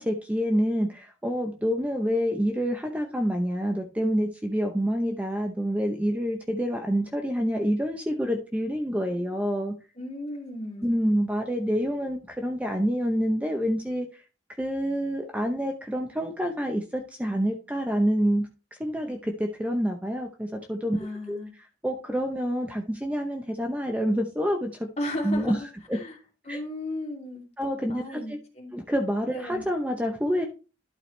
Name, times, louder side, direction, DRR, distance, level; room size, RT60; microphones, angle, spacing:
voice 1, 0.0-9.7 10.8-14.2 14.6-18.5 18.8-21.0 21.3-21.4 21.8-24.9 25.2-25.6 25.9-26.0 26.5-26.6 27.6-28.4 28.7-30.5, equal, 10° right, 3 dB, 0.7 m, -27 dB
voice 2, 9.9-10.9 20.9-21.5 25.0-25.7 25.9-26.1 26.4-27.5 27.9-28.7 29.3-29.6, left 1 dB, 35° left, -1 dB, 2.7 m, -35 dB
11.5 x 4.8 x 3.3 m, 0.34 s
head